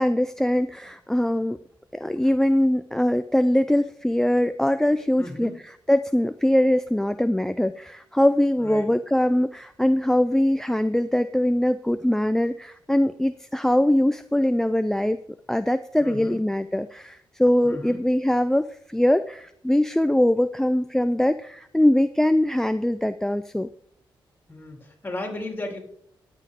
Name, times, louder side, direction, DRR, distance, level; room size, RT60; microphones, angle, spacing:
voice 1, 0.0-1.6 1.9-15.2 15.5-23.7, left 1 dB, 5° left, 12 dB, 0.4 m, -22 dB
voice 2, 5.2-5.6 8.6-8.9 16.0-16.4 17.6-18.0 24.5-25.8, left 2 dB, 20° left, 1 dB, 3.3 m, -35 dB
11.5 x 7.9 x 3.6 m, 0.68 s
cardioid pair, 90°, 9 cm